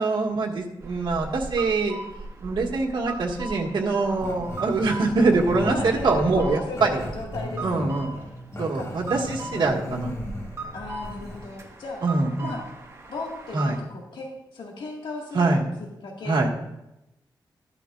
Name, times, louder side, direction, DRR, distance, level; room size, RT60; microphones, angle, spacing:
voice 1, 0.0-2.0 2.4-7.0 7.6-8.1 8.6-10.1 12.0-12.5 13.5-13.7 15.3-15.6 16.2-16.5, right 3 dB, 70° right, -1 dB, 1.7 m, -24 dB
sound 1, 0.8-13.8, right 2 dB, 35° right, 1.6 m, -39 dB
voice 2, 3.8-4.2 5.6-8.3 8.7-9.0 9.8-10.3 10.7-12.0 12.4-12.6 13.1-15.6 16.0-16.4, left 2 dB, 85° left, -1 dB, 1.8 m, -36 dB
Growling, 4.2-11.5, left 1 dB, 35° left, 1.6 m, -36 dB
13.5 x 11.5 x 2.5 m, 0.91 s
wide cardioid pair, 110°, 8 cm